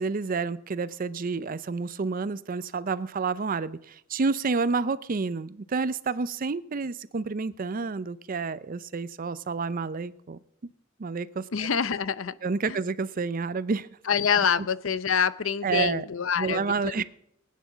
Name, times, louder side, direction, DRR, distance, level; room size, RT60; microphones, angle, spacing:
voice 1, 0.0-10.4 11.0-11.5 12.4-13.9 15.6-16.0 16.4-17.0, right 4 dB, 45° right, 16 dB, 0.5 m, -29 dB
voice 2, 11.5-12.4 12.7-12.8 14.1-17.0, left 7 dB, 75° left, 16 dB, 0.7 m, -26 dB
19.5 x 9.4 x 6.1 m, 0.76 s
head